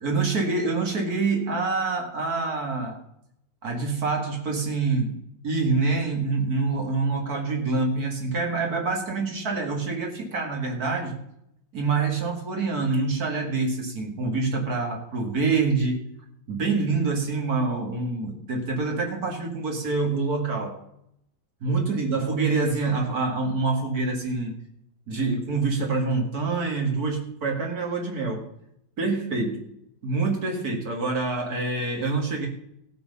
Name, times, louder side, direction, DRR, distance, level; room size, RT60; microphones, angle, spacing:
voice 1, 0.0-3.0 3.6-5.2 5.4-11.2 11.7-16.0 16.5-20.8 21.6-24.5 25.1-28.4 29.0-29.6 30.0-32.5, right 3 dB, 35° right, 1 dB, 1.5 m, -26 dB
17.5 x 6.3 x 5.4 m, 0.76 s
omnidirectional pair, 4.6 m